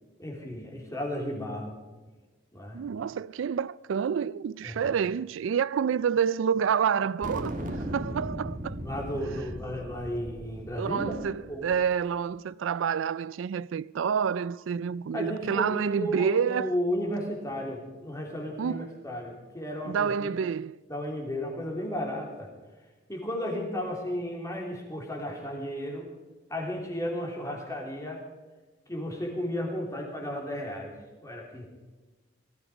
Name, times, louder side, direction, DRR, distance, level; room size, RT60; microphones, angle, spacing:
voice 1, 0.2-1.8 2.5-2.9 4.6-4.9 8.8-11.1 11.5-11.6 15.1-20.4 20.9-22.5 23.1-26.1 26.5-28.2 28.9-30.9 31.2-31.7, equal, 15° left, 3.1 m, -34 dB
voice 2, 2.7-8.8 10.8-16.8 18.6-18.9 19.9-20.8, right 7 dB, 80° right, 0.4 m, -28 dB
sound 1, 7.2-11.9, equal, 40° right, 1.7 m, -37 dB
19.0 x 13.5 x 4.9 m
head